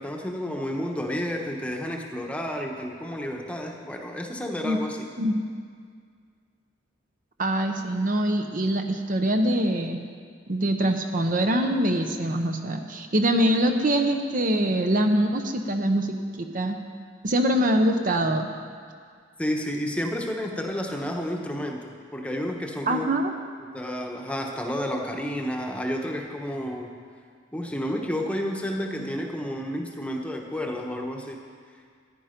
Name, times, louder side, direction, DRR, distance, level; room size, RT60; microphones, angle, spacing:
voice 1, 0.0-5.1 19.4-23.1 23.7-26.9 27.5-31.4, equal, 5° left, 1 dB, 1.0 m, -31 dB
voice 2, 7.4-10.0 10.5-16.8 17.2-18.5 22.9-23.3, right 1 dB, 45° right, 5 dB, 0.8 m, -24 dB
15.0 x 10.0 x 5.2 m, 2.1 s
head